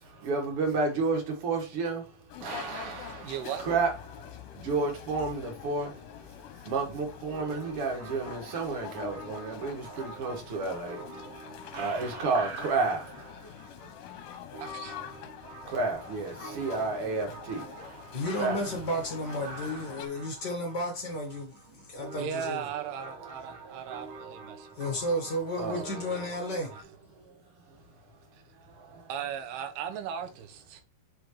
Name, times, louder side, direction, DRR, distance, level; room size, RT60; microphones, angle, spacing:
voice 1, 0.0-2.1 2.4-3.3 3.6-11.0 11.7-13.5 15.7-18.6 19.4-19.7 23.1-24.0 25.6-26.0 27.2-27.3 28.7-29.1, right 3 dB, 45° right, 2.1 m, -32 dB
sound 1, 2.3-20.1, left 10 dB, 70° left, 2.2 m, -45 dB
voice 2, 3.1-3.7 14.6-15.0 22.2-24.8 25.6-25.7 28.3-28.4 29.1-30.8, right 8 dB, 85° right, 2.9 m, -37 dB
sound 2, 7.3-26.8, right 3 dB, 65° right, 2.6 m, -48 dB
voice 3, 18.1-22.6 24.8-26.7, equal, 55° left, 1.1 m, -33 dB
6.3 x 5.4 x 3.2 m
omnidirectional pair, 4.5 m